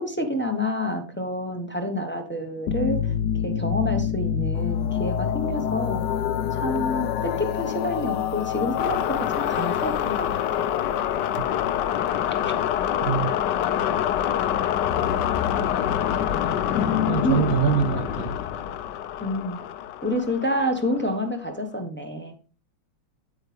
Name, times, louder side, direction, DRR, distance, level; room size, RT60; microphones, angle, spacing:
voice 1, 0.0-6.0 6.5-10.6 16.7-17.4 19.2-19.6 20.0-22.3, left 1 dB, 10° left, 0.6 m, -28 dB
sound 1, 2.7-21.1, left 9 dB, 70° left, 1.2 m, -26 dB
voice 2, 13.0-13.4 17.1-18.4, right 8 dB, 80° right, 0.8 m, -24 dB
8.8 x 8.2 x 3.4 m
omnidirectional pair, 2.2 m